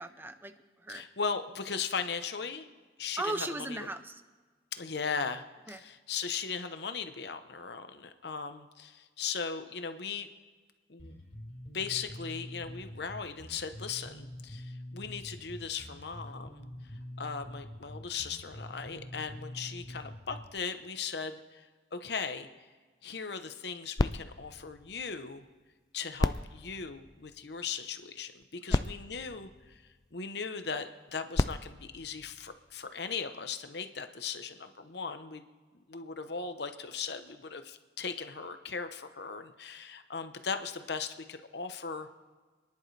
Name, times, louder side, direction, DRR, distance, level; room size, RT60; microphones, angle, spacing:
voice 1, 0.0-1.1 3.2-4.2 5.7-5.8 28.7-28.8, right 2 dB, 10° right, 10 dB, 0.6 m, -37 dB
voice 2, 0.9-2.7 3.0-3.9 4.7-10.3 10.9-11.1 11.7-16.7 17.2-22.5 23.0-25.4 25.9-29.8 30.1-35.4 35.9-42.1, left 5 dB, 65° left, 9 dB, 0.9 m, -38 dB
Bass guitar, 11.0-20.6, left 1 dB, 35° left, 4.5 m, -45 dB
sound 1, 24.0-25.6 26.1-27.7 28.4-28.5 28.7-30.3 31.1-32.9 33.6-33.7, left 2 dB, 20° left, 0.3 m, -35 dB
27.5 x 10.5 x 3.4 m, 1.4 s
head